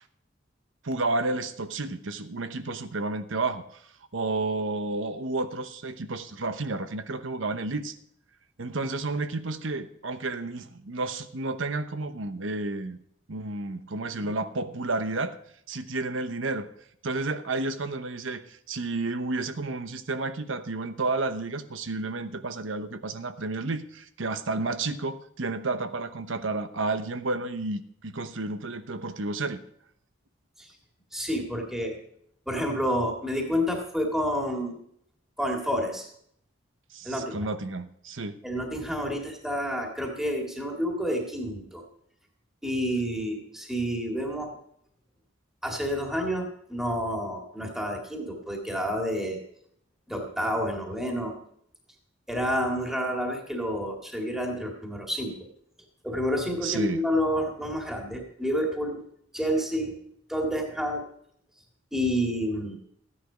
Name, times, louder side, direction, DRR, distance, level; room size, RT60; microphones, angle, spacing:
voice 1, 0.8-3.6 4.1-7.9 8.6-13.0 13.3-15.4 15.7-16.7 17.0-29.6 36.9-38.3 56.6-57.0, right 3 dB, 85° right, 10 dB, 0.9 m, -31 dB
voice 2, 31.1-32.0 32.5-34.8 35.4-36.1 37.0-37.4 38.4-41.8 42.6-44.5 45.6-49.4 50.1-51.3 52.3-55.5 56.0-59.0 59.3-60.0 60.3-61.0 61.9-62.8, equal, ahead, 1 dB, 2.0 m, -29 dB
14.5 x 10.0 x 5.0 m, 0.69 s
head